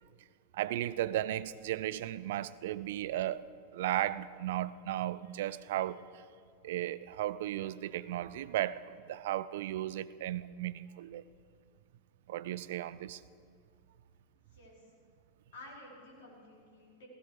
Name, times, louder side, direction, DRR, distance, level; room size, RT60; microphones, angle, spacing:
voice 1, 0.5-3.5 3.7-6.2 6.6-11.2 12.3-13.2, right 13 dB, 55° right, 17 dB, 0.4 m, -35 dB
voice 2, 14.5-14.8 15.5-17.1, left 1 dB, 55° left, -3 dB, 4.8 m, -52 dB
16.5 x 16.0 x 5.0 m, 2.2 s
figure-of-eight pair, 90°, 0 cm